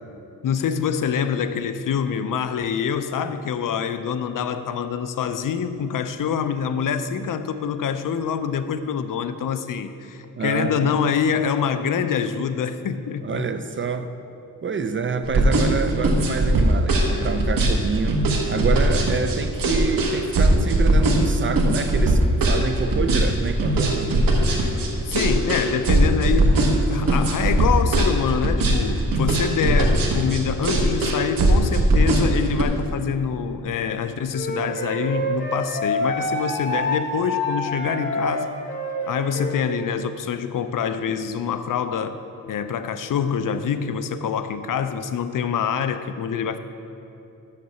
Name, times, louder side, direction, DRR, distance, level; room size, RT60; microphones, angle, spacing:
voice 1, 0.4-13.4 25.0-26.6 26.9-38.5 39.1-42.1 42.5-46.6, left 7 dB, 65° left, 11 dB, 0.5 m, -25 dB
voice 2, 10.4-11.0 13.2-14.1 14.6-18.2 18.5-24.2, right 5 dB, 35° right, 9 dB, 0.4 m, -27 dB
sound 1, 15.2-32.6, right 1 dB, 75° right, 1.2 m, -19 dB
Wind instrument woodwind instrument, 34.3-39.6, left 1 dB, 35° left, 2.2 m, -27 dB
6.7 x 6.3 x 6.8 m, 2.9 s
wide cardioid pair, 125°, 35 cm